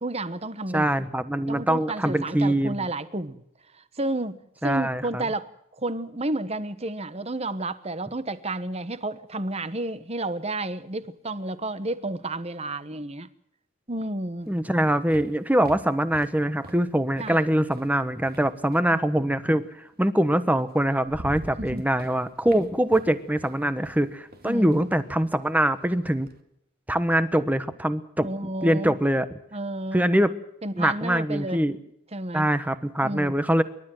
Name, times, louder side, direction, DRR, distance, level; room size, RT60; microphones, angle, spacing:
voice 1, 0.0-0.9 1.5-3.4 3.7-5.5 5.8-13.3 13.9-14.5 17.2-17.5 18.9-19.0 21.6-21.9 24.4-24.8 28.2-29.0 29.5-30.1 30.6-31.6 32.1-32.5 33.0-33.4, right 2 dB, 30° right, 1.2 m, -31 dB
voice 2, 0.7-2.9 4.6-5.2 14.5-19.7 20.0-26.3 26.9-29.3 29.9-30.3 30.8-31.8 32.3-33.6, right 1 dB, 5° right, 1.1 m, -23 dB
sound 1, 14.4-19.0 20.2-20.3 20.7-26.4, right 1 dB, 45° right, 2.2 m, -45 dB
28.5 x 12.5 x 7.8 m
head